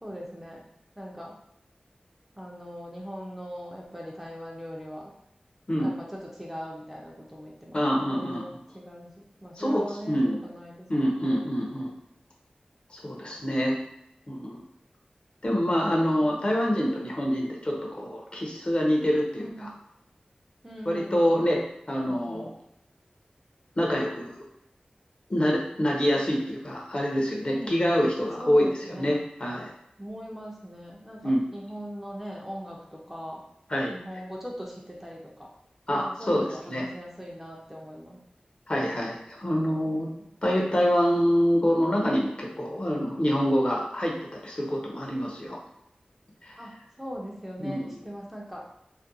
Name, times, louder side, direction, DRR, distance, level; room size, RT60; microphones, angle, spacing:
voice 1, 0.0-0.6 1.0-1.4 2.4-5.1 5.8-7.8 8.1-11.5 19.4-19.8 20.6-21.3 22.1-22.2 27.5-27.8 28.4-29.2 30.0-33.4 33.9-35.5 35.9-38.2 40.2-40.3 46.6-48.7, equal, 10° right, -2 dB, 0.5 m, -40 dB
voice 2, 7.7-8.6 9.6-10.4 10.9-11.9 12.9-13.8 14.3-14.6 15.4-19.7 20.9-21.6 21.9-22.5 23.8-24.4 25.3-29.7 31.2-31.4 33.7-33.9 35.9-36.8 38.7-40.1 40.4-45.6 46.4-46.6 47.6-47.9, equal, 40° left, -1 dB, 0.6 m, -26 dB
2.4 x 2.2 x 2.6 m, 0.81 s
wide cardioid pair, 70°, 3 cm